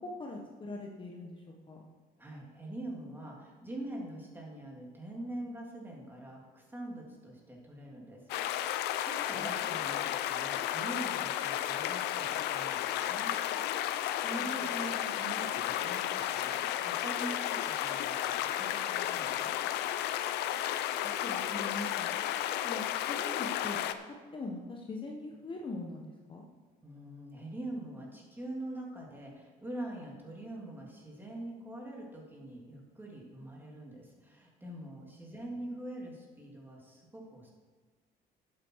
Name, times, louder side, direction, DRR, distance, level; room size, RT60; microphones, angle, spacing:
voice 1, 0.2-1.8 9.3-9.7 14.4-14.5 21.2-22.1 22.6-23.8 24.3-26.4 35.3-35.5, left 2 dB, 30° left, 0 dB, 1.2 m, -42 dB
voice 2, 2.2-13.6 14.2-19.5 26.8-37.5, right 1 dB, 10° right, -2 dB, 2.7 m, -44 dB
sound 1, 8.3-23.9, left 12 dB, 85° left, 0.6 m, -33 dB
11.0 x 8.2 x 4.7 m, 1.4 s
cardioid pair, 110°, 17 cm